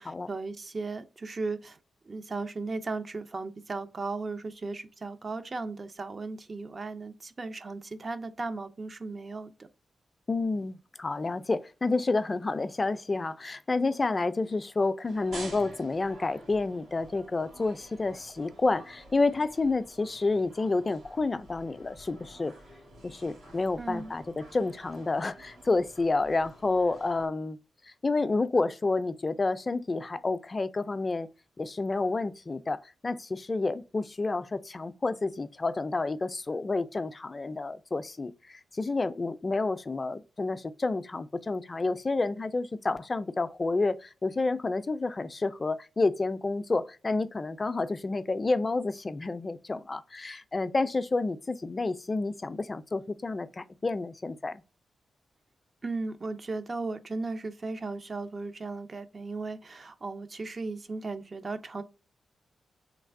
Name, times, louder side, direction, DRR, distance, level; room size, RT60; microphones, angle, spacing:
voice 1, 0.0-1.8 2.1-9.5 23.8-24.1 55.8-61.8, right 3 dB, 45° right, 0.5 m, -36 dB
voice 2, 10.3-22.5 23.0-27.6 28.0-31.3 31.6-54.6, left 3 dB, 40° left, 0.3 m, -29 dB
sound 1, 15.1-27.3, right 1 dB, 85° right, 2.0 m, -50 dB
3.2 x 3.2 x 2.5 m
supercardioid pair, 50°, 0 cm